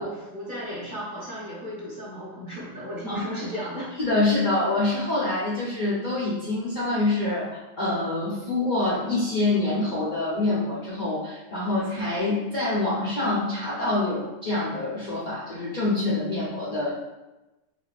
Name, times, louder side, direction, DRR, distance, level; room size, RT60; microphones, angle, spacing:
voice 1, 0.0-3.9, equal, 45° right, -7 dB, 0.7 m, -35 dB
voice 2, 4.0-16.9, left 2 dB, 90° left, -8 dB, 0.4 m, -26 dB
4.8 x 2.5 x 2.3 m, 1.0 s
omnidirectional pair, 1.8 m